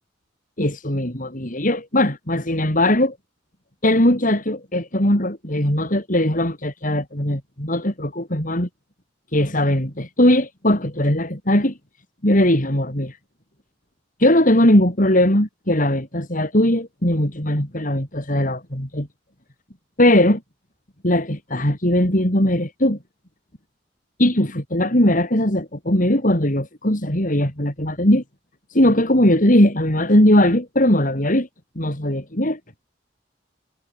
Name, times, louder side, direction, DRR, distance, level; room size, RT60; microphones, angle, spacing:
voice 1, 0.6-3.2 3.8-8.7 9.3-11.7 12.2-13.1 14.2-19.1 20.0-20.4 21.0-23.0 24.2-28.2 28.7-31.5 31.8-32.6, left 1 dB, 45° left, 6.3 m, -19 dB
head